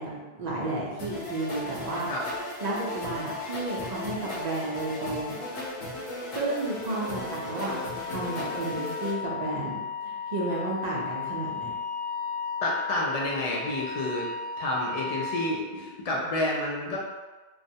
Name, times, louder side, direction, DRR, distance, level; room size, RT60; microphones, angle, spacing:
voice 1, 0.0-2.1 2.6-5.4 6.3-7.8 8.0-11.7, right 2 dB, 55° right, -4 dB, 0.5 m, -32 dB
sound 1, 1.0-9.1, left 2 dB, 80° left, 0.8 m, -36 dB
Wind instrument woodwind instrument, 6.1-15.6, left 5 dB, 80° right, 0.9 m, -35 dB
voice 2, 12.6-14.3 14.6-17.0, left 1 dB, 55° left, -3 dB, 0.4 m, -29 dB
2.2 x 2.0 x 2.6 m, 1.2 s
omnidirectional pair, 1.1 m